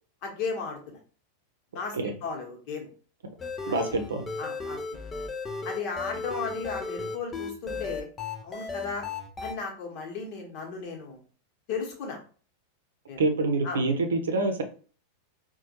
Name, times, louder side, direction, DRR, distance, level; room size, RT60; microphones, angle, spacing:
voice 1, 0.2-1.0 1.7-2.9 3.9-4.0 4.4-4.8 5.6-8.1 8.4-9.0 9.4-11.2 11.7-12.2 13.1-13.2 13.6-13.8, left 5 dB, 45° left, 1 dB, 1.2 m, -35 dB
sound 1, 3.4-9.5, left 4 dB, 20° left, 0.5 m, -35 dB
voice 2, 3.7-4.2 13.2-14.6, right 3 dB, 65° right, 5 dB, 0.7 m, -26 dB
4.3 x 2.3 x 2.9 m, 0.40 s
figure-of-eight pair, 90°, 0 cm